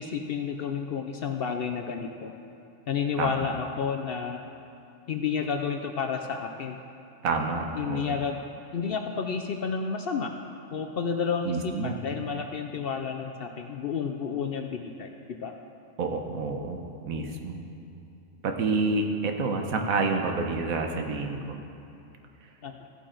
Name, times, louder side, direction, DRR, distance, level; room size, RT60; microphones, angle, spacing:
voice 1, 0.0-2.3 2.9-4.5 5.1-6.8 7.8-8.4 8.7-10.3 10.7-15.5 22.6-22.7, left 6 dB, 60° left, 4 dB, 0.6 m, -31 dB
voice 2, 3.2-3.5 7.2-8.1 11.4-12.0 16.0-17.6 18.4-21.6, right 3 dB, 90° right, 4 dB, 1.3 m, -29 dB
14.5 x 8.5 x 3.9 m, 2.7 s
omnidirectional pair, 1.4 m